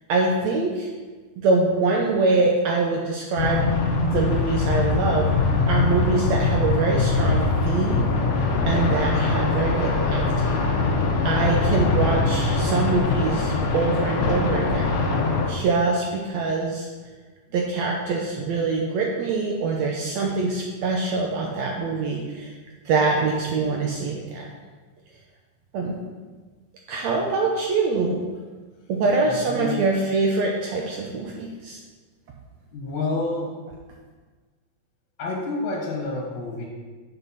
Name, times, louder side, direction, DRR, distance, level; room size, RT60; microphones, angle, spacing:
voice 1, 0.1-0.9 1.4-3.6 4.1-5.3 5.7-8.2 8.7-10.7 11.2-15.0 15.5-16.9 17.5-22.5 22.8-24.5 25.7-26.0 26.9-28.2 28.9-31.8, right 3 dB, 75° right, 0 dB, 1.7 m, -24 dB
sound 1, 3.4-15.5, left 3 dB, 80° left, 1.1 m, -22 dB
voice 2, 29.2-29.8 32.7-33.6 35.2-36.7, left 2 dB, 60° left, -2 dB, 2.8 m, -29 dB
6.7 x 6.3 x 5.6 m, 1.4 s
omnidirectional pair, 3.9 m